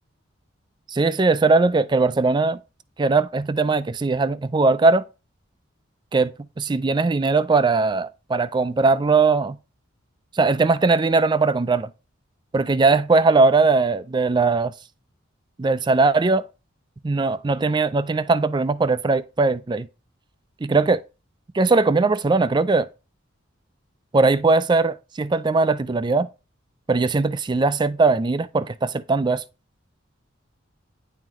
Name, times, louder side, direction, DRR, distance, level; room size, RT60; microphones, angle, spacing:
voice 1, 0.9-2.6 3.0-5.1 6.1-6.3 6.6-9.6 10.3-11.9 12.5-14.7 15.6-16.5 17.0-19.9 20.6-21.0 21.5-22.9 24.1-26.3 26.9-29.4, right 3 dB, 20° right, 0.3 m, -20 dB
9.9 x 3.8 x 3.0 m
head